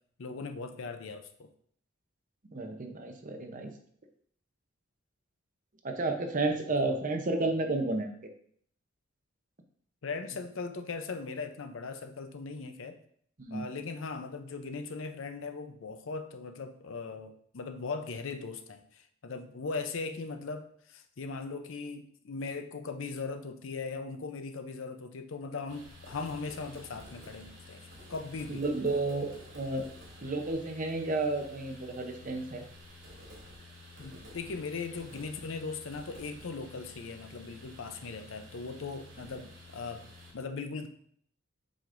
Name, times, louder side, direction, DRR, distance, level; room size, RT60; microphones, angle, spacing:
voice 1, 0.2-1.5 6.8-7.0 10.0-13.0 13.5-27.8 28.1-28.6 34.0-40.0 40.3-40.9, left 4 dB, 75° left, 8 dB, 0.6 m, -39 dB
voice 2, 2.5-3.7 5.8-8.3 13.4-13.7 28.5-29.8 30.2-32.6 34.1-34.2, right 2 dB, 40° right, 5 dB, 0.8 m, -32 dB
sound 1, 25.7-40.3, left 1 dB, 65° right, 2.4 m, -51 dB
7.6 x 5.0 x 2.6 m, 0.63 s
head